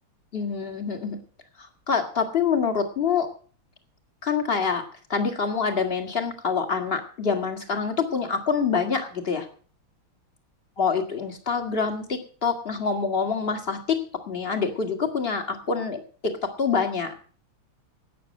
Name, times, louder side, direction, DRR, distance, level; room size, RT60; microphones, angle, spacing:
voice 1, 0.3-1.2 1.6-3.3 4.2-4.8 5.1-9.5 10.8-14.0 14.3-17.2, left 5 dB, 30° left, 5 dB, 2.1 m, -26 dB
13.0 x 9.0 x 7.7 m, 0.43 s
omnidirectional pair, 2.3 m